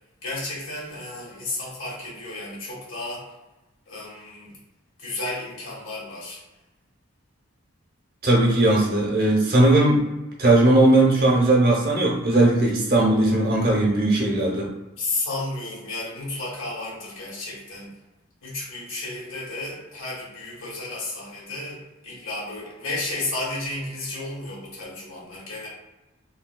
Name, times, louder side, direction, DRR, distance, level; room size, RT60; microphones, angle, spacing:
voice 1, 0.2-3.2 3.9-4.5 5.0-6.4 15.0-17.9 18.4-25.7, left 2 dB, 70° left, -5 dB, 1.4 m, -32 dB
voice 2, 8.2-10.0 10.4-14.7, right 2 dB, 45° right, -3 dB, 0.8 m, -18 dB
3.2 x 2.7 x 2.2 m, 1.0 s
head